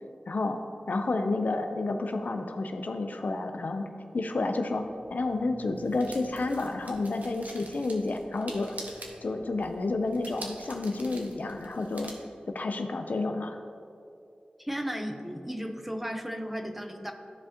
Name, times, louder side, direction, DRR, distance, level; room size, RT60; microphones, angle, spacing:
voice 1, 0.3-0.6 0.9-3.9 4.1-8.7 9.2-12.1 12.5-13.6, left 3 dB, 70° left, 6 dB, 0.5 m, -30 dB
sound 1, 4.7-12.1, right 2 dB, 60° right, 1.1 m, -47 dB
voice 2, 14.6-17.1, equal, 5° right, 5 dB, 0.7 m, -35 dB
13.5 x 5.0 x 2.9 m, 2.5 s
cardioid pair, 45°, 3 cm